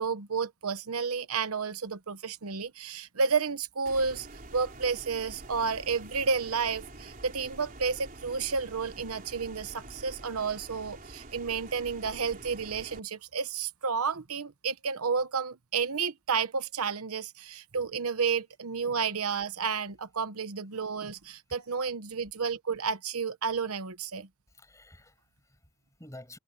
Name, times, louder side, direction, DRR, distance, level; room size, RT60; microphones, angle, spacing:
voice 1, 0.0-4.3 4.5-24.3, right 5 dB, 85° right, 1.0 m, -31 dB
sound 1, 3.9-13.0, right 2 dB, 40° right, 4.1 m, -47 dB
voice 2, 24.5-26.4, left 1 dB, 15° left, 6.6 m, -51 dB
head